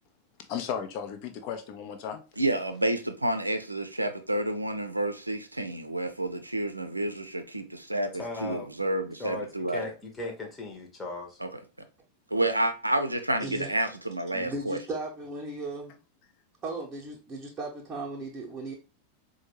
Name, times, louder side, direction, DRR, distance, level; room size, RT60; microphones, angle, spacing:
voice 1, 0.5-2.2, left 8 dB, 45° left, 0.6 m, -35 dB
voice 2, 2.4-9.9 11.4-11.5 12.3-14.8, right 1 dB, 85° right, 0.5 m, -29 dB
voice 3, 8.2-8.7 9.2-9.5 9.7-11.4, left 2 dB, 15° left, 0.9 m, -37 dB
voice 4, 13.4-13.7 14.3-16.0 16.6-18.7, right 2 dB, 20° right, 0.9 m, -36 dB
4.4 x 2.3 x 3.0 m
figure-of-eight pair, 90°, 0 cm